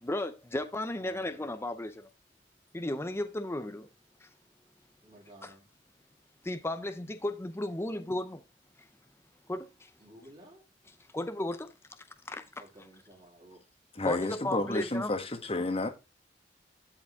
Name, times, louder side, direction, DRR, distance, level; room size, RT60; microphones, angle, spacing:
voice 1, 0.0-2.1 2.7-3.9 4.2-4.3 5.4-5.5 6.4-8.4 8.8-8.9 9.5-9.9 11.1-12.5 14.0-15.1, left 1 dB, 15° left, 0.6 m, -35 dB
voice 2, 0.9-1.4 5.0-5.7 10.0-10.7 12.6-13.7 14.5-14.8, right 1 dB, 30° right, 3.8 m, -54 dB
voice 3, 14.0-15.9, left 2 dB, 35° left, 1.4 m, -31 dB
12.5 x 5.0 x 3.6 m
head